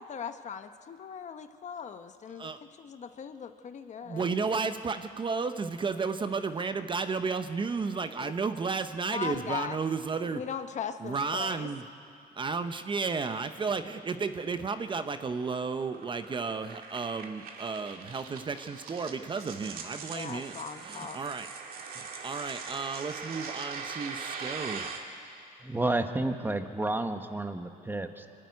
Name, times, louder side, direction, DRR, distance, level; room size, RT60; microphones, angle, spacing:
voice 1, 0.0-2.5 2.8-4.7 8.2-8.3 9.1-9.8 10.3-11.7 20.1-21.2, left 7 dB, 45° left, 9 dB, 1.0 m, -39 dB
voice 2, 4.0-10.4 11.0-11.8 12.4-20.6 20.8-21.5 21.9-24.9, right 4 dB, 30° right, 9 dB, 0.8 m, -33 dB
sound 1, 14.3-25.0, right 5 dB, 60° right, 2.3 m, -42 dB
voice 3, 25.6-28.3, right 2 dB, 10° right, 7 dB, 1.2 m, -31 dB
26.0 x 12.5 x 9.6 m, 2.5 s
cardioid pair, 110°, 17 cm